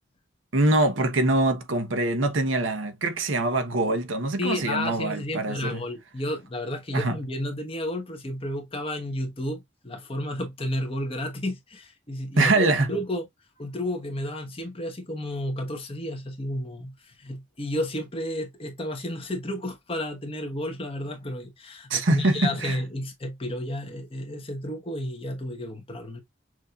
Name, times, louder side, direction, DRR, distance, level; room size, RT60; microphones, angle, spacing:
voice 1, 0.5-5.8 6.9-7.2 12.4-12.9 21.9-22.8, right 2 dB, 85° right, 1.0 m, -24 dB
voice 2, 4.4-13.3 13.6-26.2, left 1 dB, 30° left, 1.1 m, -32 dB
6.2 x 2.7 x 2.4 m
head